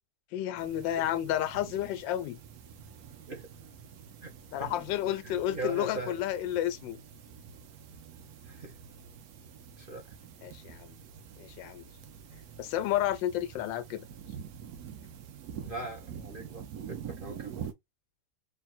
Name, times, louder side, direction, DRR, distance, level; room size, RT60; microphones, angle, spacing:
voice 1, 0.3-2.4 4.5-7.0 10.4-11.0 11.4-11.9 12.6-14.0, left 12 dB, 90° left, 1.3 m, -31 dB
sound 1, 0.6-17.7, right 8 dB, 65° right, 1.1 m, -46 dB
voice 2, 5.2-6.2 8.5-8.7 9.8-10.0 15.6-17.7, right 2 dB, 40° right, 0.9 m, -40 dB
3.7 x 2.2 x 4.1 m
omnidirectional pair, 2.0 m